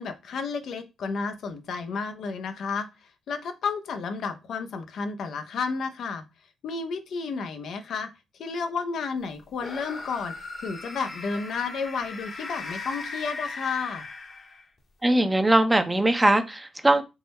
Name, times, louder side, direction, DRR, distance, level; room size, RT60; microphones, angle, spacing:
voice 1, 0.0-6.2 6.6-8.1 8.4-14.1, left 5 dB, 65° left, 0.5 m, -32 dB
Monsters Scream, 9.6-14.8, left 3 dB, 45° left, 1.0 m, -38 dB
voice 2, 15.0-17.0, right 1 dB, 15° right, 0.5 m, -21 dB
3.5 x 2.0 x 4.1 m
cardioid pair, 90°, 0 cm